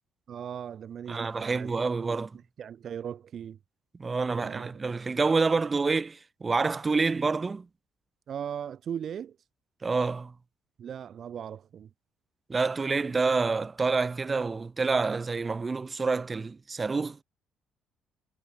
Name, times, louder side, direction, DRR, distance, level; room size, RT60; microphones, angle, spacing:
voice 1, 0.3-2.2 2.6-3.6 4.3-4.8 8.3-9.4 10.8-11.9, right 8 dB, 40° right, 5.1 m, -38 dB
voice 2, 1.1-2.4 4.0-7.7 9.8-10.3 12.5-17.2, right 4 dB, 20° right, 1.1 m, -28 dB
cardioid pair, 175°, 0 cm